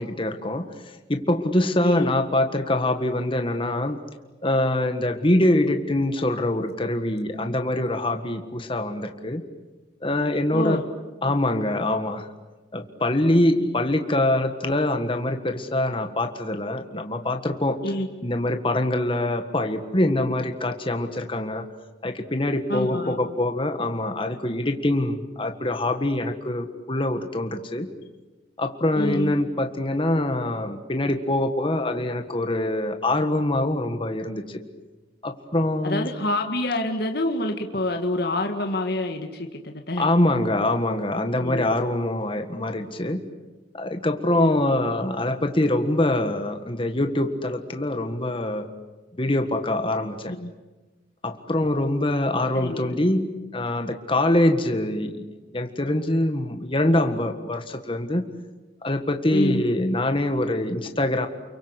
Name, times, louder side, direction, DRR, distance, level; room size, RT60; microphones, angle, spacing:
voice 1, 0.0-4.0 4.4-9.4 10.0-10.8 11.2-12.3 12.7-17.8 18.2-21.7 22.0-27.9 28.6-34.6 35.2-36.1 40.0-43.3 43.7-48.7 49.2-50.3 51.2-55.2 55.5-58.2 58.8-61.3, left 1 dB, 30° left, 6 dB, 1.7 m, -24 dB
voice 2, 10.5-10.8 11.2-11.4 13.6-13.8 17.8-18.1 22.7-23.1 29.0-29.3 35.8-40.1 41.4-41.7 44.3-44.6 50.4-50.5 52.6-53.0 59.3-59.6, left 1 dB, 60° left, 4 dB, 2.0 m, -27 dB
30.0 x 23.5 x 8.2 m, 1.2 s
head